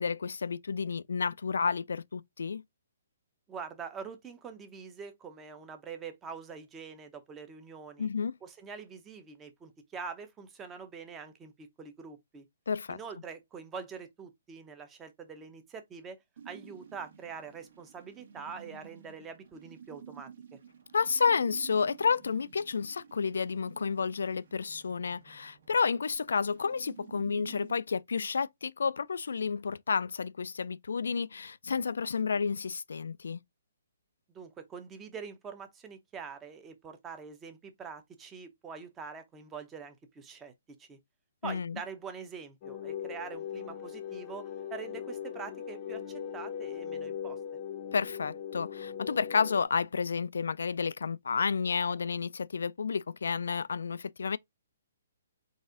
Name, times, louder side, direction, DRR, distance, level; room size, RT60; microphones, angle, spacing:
voice 1, 0.0-2.6 8.0-8.3 12.7-13.0 20.9-33.4 41.4-41.8 47.9-54.4, left 5 dB, 85° left, 0.3 m, -31 dB
voice 2, 3.5-8.1 8.4-12.5 12.9-20.3 34.3-40.5 40.8-41.0 41.4-47.4, right 6 dB, 15° right, 0.7 m, -44 dB
sound 1, 16.4-27.8, right 7 dB, 65° right, 1.3 m, -52 dB
sound 2, 42.6-49.6, left 8 dB, 30° left, 0.6 m, -40 dB
4.1 x 2.6 x 3.7 m
hypercardioid pair, 160°, 0 cm